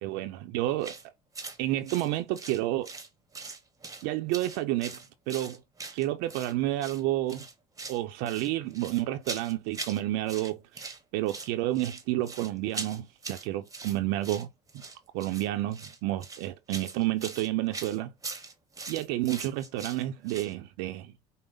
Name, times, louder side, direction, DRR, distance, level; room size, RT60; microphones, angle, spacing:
voice 1, 0.0-0.9 1.6-2.9 4.0-5.0 5.3-5.6 5.9-7.4 7.9-14.5 15.1-18.1 18.9-21.1, right 15 dB, 80° right, 0.6 m, -30 dB
sound 1, 0.8-1.0 1.3-1.6 1.9-3.1 3.3-4.0 4.3-6.5 6.8-7.0 7.3-8.0 8.3-10.0 10.3-11.0 11.3-20.5, right 4 dB, 20° right, 0.9 m, -41 dB
5.5 x 2.1 x 3.5 m
supercardioid pair, 80°, 18 cm